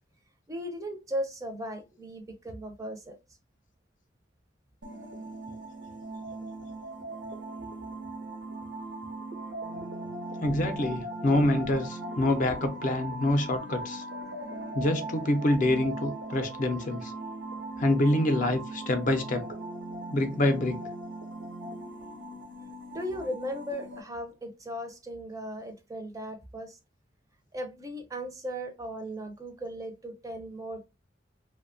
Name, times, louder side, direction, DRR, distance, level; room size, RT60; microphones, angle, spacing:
voice 1, 0.5-3.2 22.9-26.8 27.5-30.9, equal, 20° right, 0.4 m, -37 dB
sound 1, 4.8-24.0, right 2 dB, 90° right, 0.6 m, -39 dB
voice 2, 10.4-14.0 14.7-17.1 17.8-19.5 20.1-20.9, left 1 dB, 45° left, 0.4 m, -26 dB
2.6 x 2.1 x 2.5 m
head